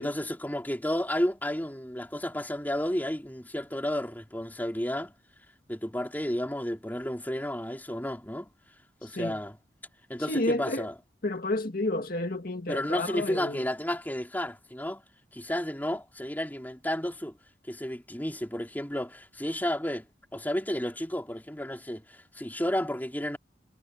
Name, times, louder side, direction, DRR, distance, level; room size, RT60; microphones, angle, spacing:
voice 1, 0.0-5.1 5.7-8.5 9.0-9.5 10.1-10.9 12.7-15.0 15.3-17.3 17.7-20.1 20.3-23.4, left 1 dB, 10° left, 3.5 m, -32 dB
voice 2, 9.0-9.4 10.2-10.9 11.2-13.7, left 2 dB, 55° left, 2.0 m, -31 dB
head